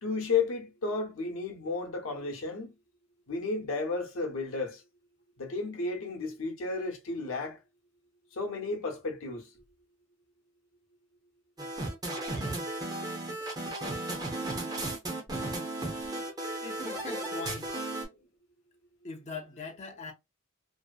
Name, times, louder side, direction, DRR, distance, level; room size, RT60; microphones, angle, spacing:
voice 1, 0.0-2.7 3.3-4.8 5.4-7.6 8.3-9.5 13.9-14.3 15.9-16.2, left 4 dB, 70° left, 0.8 m, -33 dB
sound 1, 11.6-18.0, right 2 dB, 20° right, 0.6 m, -35 dB
voice 2, 16.6-17.8 19.0-20.1, left 4 dB, 30° left, 0.4 m, -41 dB
2.7 x 2.0 x 2.3 m
head